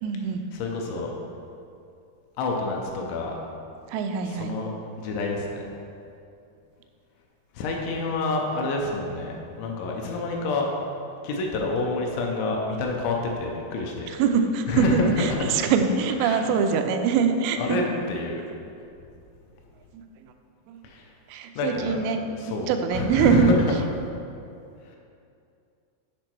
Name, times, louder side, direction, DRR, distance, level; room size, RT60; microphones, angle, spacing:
voice 1, 0.0-0.4 3.9-4.6 14.1-17.8 19.9-20.0 20.7-20.8 21.3-23.6, right 6 dB, 85° right, 6 dB, 3.1 m, -24 dB
voice 2, 0.5-1.1 2.4-3.4 4.3-4.7 5.0-5.7 7.5-10.7 11.2-14.2 14.7-15.1 16.2-16.5 17.6-18.5 20.8-21.1 21.6-22.0 22.3-23.6 24.8-25.0, left 3 dB, 80° left, 0 dB, 2.9 m, -28 dB
8.7 x 5.2 x 4.5 m, 2.6 s
omnidirectional pair, 5.6 m